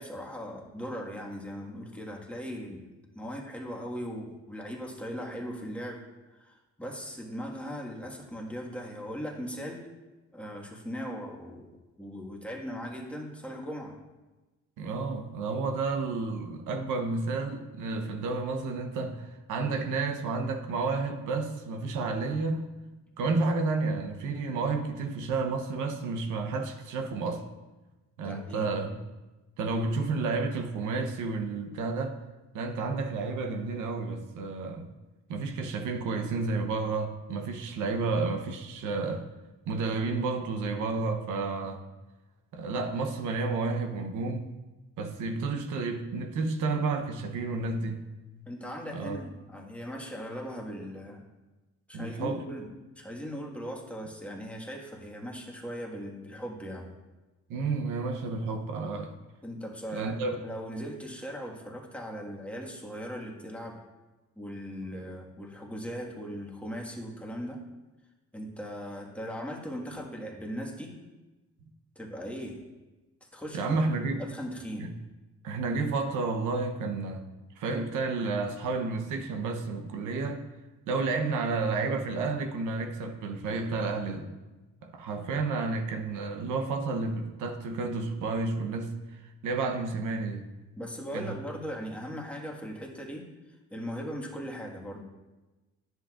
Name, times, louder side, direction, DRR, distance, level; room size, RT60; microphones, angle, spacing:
voice 1, 0.0-2.8 3.1-6.0 6.3-9.9 10.3-11.7 12.0-14.0 28.2-29.0 48.5-51.2 51.9-52.7 53.0-56.9 59.4-63.8 64.4-67.6 68.3-70.9 72.0-72.6 73.3-73.8 74.2-74.9 90.8-93.2 93.7-95.0, equal, 5° left, -1 dB, 1.6 m, -39 dB
voice 2, 14.8-22.6 23.2-27.5 28.2-29.0 29.6-32.2 32.5-34.9 35.3-39.3 39.7-41.8 42.5-44.5 45.0-48.0 48.9-49.2 51.9-52.4 57.5-59.1 59.9-60.4 73.5-74.2 74.8-74.9 75.4-77.2 77.6-80.4 80.9-84.3 84.8-90.5 91.1-91.4, right 3 dB, 85° right, 5 dB, 0.9 m, -31 dB
10.0 x 7.8 x 2.5 m, 1.1 s
cardioid pair, 90°, 30 cm